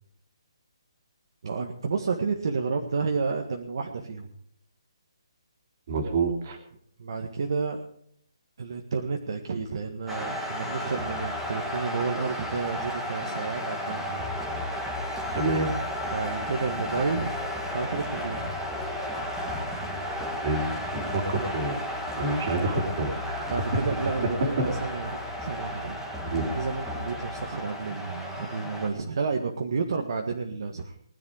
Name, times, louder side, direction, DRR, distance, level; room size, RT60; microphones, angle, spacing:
voice 1, 1.4-4.3 7.0-7.8 8.6-14.2 16.0-17.3 17.7-18.6 23.5-26.0 26.5-30.9, right 4 dB, 50° right, 3 dB, 1.7 m, -31 dB
voice 2, 5.9-6.6 15.3-15.7 20.4-20.8 21.1-21.8 22.2-23.5 26.2-26.4, right 3 dB, 35° right, 4 dB, 3.1 m, -27 dB
sound 1, 10.1-28.9, left 1 dB, 5° right, 1.9 m, -33 dB
19.5 x 10.5 x 5.0 m, 0.68 s
hypercardioid pair, 170°, 3 cm